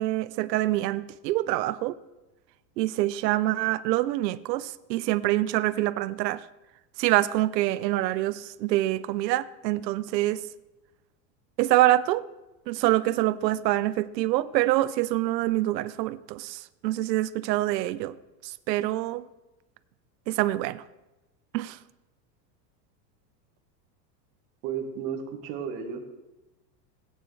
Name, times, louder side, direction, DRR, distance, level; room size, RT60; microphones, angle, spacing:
voice 1, 0.0-2.0 2.8-6.4 7.0-10.4 11.6-12.2 12.7-18.2 18.4-19.2 20.3-20.8 21.5-21.8, right 16 dB, 80° right, 0.7 m, -25 dB
voice 2, 24.6-26.0, right 7 dB, 35° right, 1.4 m, -33 dB
17.0 x 9.1 x 3.2 m
supercardioid pair, 170°, 50 cm